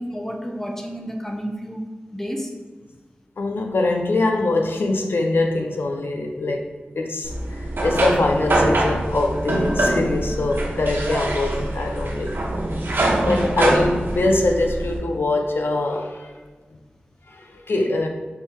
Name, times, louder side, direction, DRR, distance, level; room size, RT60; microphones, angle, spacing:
voice 1, 0.0-1.8 2.1-2.5 13.2-13.5, equal, 10° left, 1 dB, 0.7 m, -30 dB
voice 2, 3.4-6.6 7.0-12.3 13.2-16.3 17.3-18.1, left 2 dB, 85° left, 3 dB, 0.4 m, -23 dB
sound 1, 7.2-15.0, right 1 dB, 75° right, 0.7 m, -24 dB
3.6 x 2.6 x 4.3 m, 1.4 s
wide cardioid pair, 55°, 4 cm